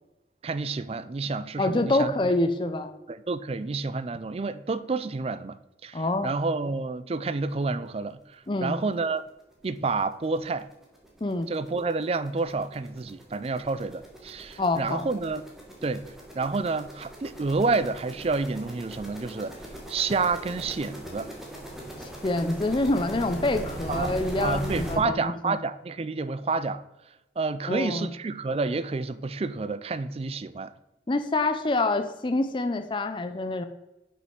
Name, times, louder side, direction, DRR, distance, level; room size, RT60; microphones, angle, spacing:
voice 1, 0.4-2.1 3.1-5.6 5.8-9.2 9.6-10.7 11.5-15.4 15.8-16.1 16.4-19.5 19.9-21.3 23.9-24.2 24.4-26.8 27.4-30.7, right 3 dB, 35° right, 0.4 m, -29 dB
voice 2, 1.6-2.9 5.9-6.3 8.5-8.8 11.2-11.5 14.6-15.1 22.0-25.6 27.7-28.1 31.1-33.6, left 2 dB, 25° left, 0.5 m, -26 dB
sound 1, 9.5-9.6 10.0-10.1 10.4-25.0, right 1 dB, ahead, 1.5 m, -40 dB
6.3 x 5.3 x 5.9 m
head